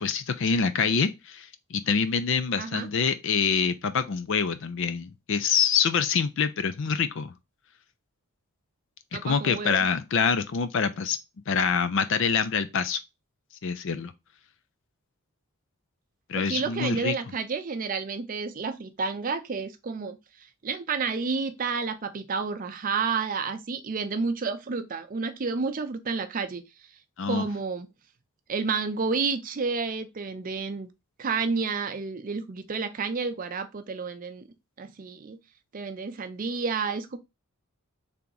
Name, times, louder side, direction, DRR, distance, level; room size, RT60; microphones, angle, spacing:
voice 1, 0.0-7.3 9.2-11.2 11.5-13.0 13.6-14.1 16.3-17.1 27.2-27.4, left 6 dB, 60° left, 0.4 m, -26 dB
voice 2, 2.6-2.9 9.1-9.9 16.3-20.2 20.6-26.6 27.2-27.9 28.5-30.9 31.2-34.5 34.8-35.4 35.7-37.2, right 4 dB, 40° right, 0.5 m, -30 dB
3.5 x 2.9 x 3.8 m
head